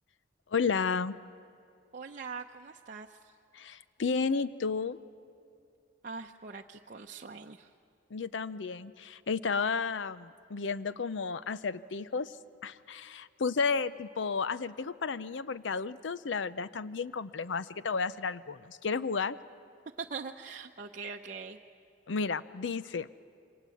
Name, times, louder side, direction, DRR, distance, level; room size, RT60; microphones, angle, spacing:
voice 1, 0.5-1.2 3.5-5.0 8.1-12.3 12.6-19.4 22.1-23.1, left 5 dB, 75° left, 15 dB, 0.6 m, -32 dB
voice 2, 1.9-3.2 6.0-7.7 20.0-21.6, right 5 dB, 45° right, 1 dB, 0.8 m, -42 dB
27.5 x 25.0 x 8.5 m, 2.5 s
head